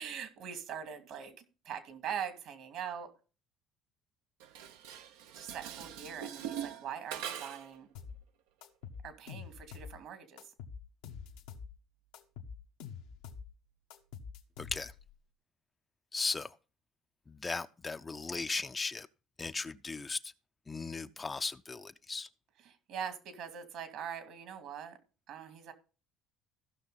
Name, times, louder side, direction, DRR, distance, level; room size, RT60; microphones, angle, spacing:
voice 1, 0.0-1.4 1.6-3.1 5.3-7.9 9.0-10.4 22.6-25.0 25.3-25.7, right 8 dB, 70° right, 2.3 m, -42 dB
Dishes pots and pans, 4.4-7.8, right 9 dB, 85° right, 0.9 m, -42 dB
sound 1, 7.9-8.2 8.6-10.0 10.4-11.7 12.1-13.5 13.9-15.1, left 6 dB, 85° left, 1.2 m, -46 dB
voice 2, 14.6-14.9 16.1-16.5 17.3-19.1 19.4-20.2 20.7-22.3, left 4 dB, 25° left, 0.6 m, -37 dB
15.5 x 6.1 x 4.0 m
supercardioid pair, 80°, 0 cm